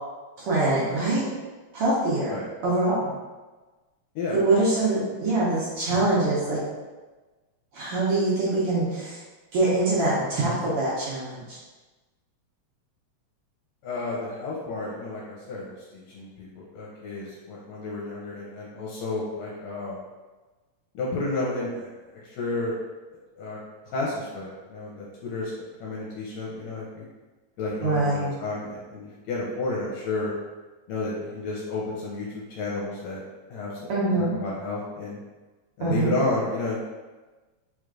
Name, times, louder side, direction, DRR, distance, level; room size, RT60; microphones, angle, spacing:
voice 1, 0.4-1.3 1.7-2.3 2.6-3.0 4.3-6.6 7.7-9.2 9.5-11.6 27.8-28.3 33.9-34.3 35.8-36.1, right 2 dB, 65° right, -7 dB, 1.5 m, -24 dB
voice 2, 13.8-20.0 20.9-22.7 23.4-25.5 25.8-27.1 27.6-30.3 30.9-33.2 33.5-33.9 34.2-35.2 35.8-36.9, left 2 dB, 80° left, -5 dB, 1.8 m, -31 dB
4.7 x 3.1 x 2.4 m, 1.2 s
omnidirectional pair, 3.3 m